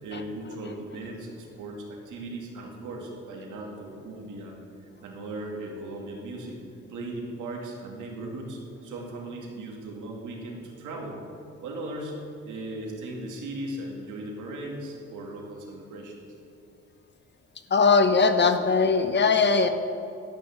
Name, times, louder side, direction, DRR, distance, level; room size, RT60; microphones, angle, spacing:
voice 1, 0.0-4.5 5.0-6.6 6.9-11.2 11.6-12.1 12.4-16.1, right 2 dB, 85° right, -1 dB, 2.4 m, -37 dB
voice 2, 17.7-19.7, left 4 dB, 35° left, 8 dB, 0.9 m, -20 dB
12.0 x 11.0 x 3.7 m, 2.8 s
cardioid pair, 90°, 30 cm